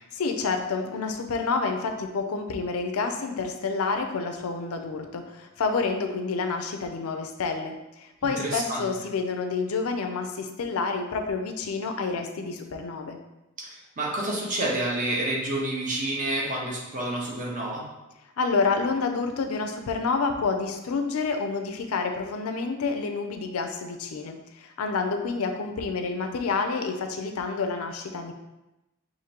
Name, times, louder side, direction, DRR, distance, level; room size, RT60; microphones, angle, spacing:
voice 1, 0.1-13.2 18.4-28.3, left 4 dB, 85° left, 5 dB, 0.5 m, -28 dB
voice 2, 8.2-8.8 13.6-17.8, right 1 dB, 40° right, -3 dB, 0.9 m, -29 dB
5.1 x 2.6 x 2.9 m, 0.97 s
head